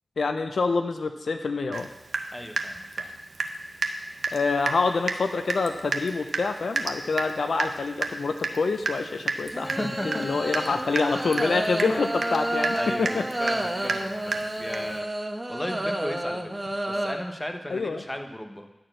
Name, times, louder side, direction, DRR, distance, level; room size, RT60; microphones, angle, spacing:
voice 1, 0.2-1.9 4.3-13.2 13.8-13.9 17.7-18.0, left 4 dB, 80° left, 7 dB, 0.6 m, -26 dB
Water tap faucet / Drip, 1.7-1.9 2.1-3.6 3.8-4.0 4.2-4.4 4.7-4.8 5.1-5.2 5.5-15.0, right 4 dB, 85° right, 0.7 m, -31 dB
voice 2, 2.3-3.1 9.6-10.3 10.6-10.8 12.7-16.4 16.9-18.7, left 1 dB, 15° left, 4 dB, 1.1 m, -35 dB
sound 1, 2.8-2.9 9.5-17.1, right 1 dB, 25° right, 1.1 m, -30 dB
11.5 x 4.4 x 7.6 m, 0.96 s
cardioid pair, 55°, 0 cm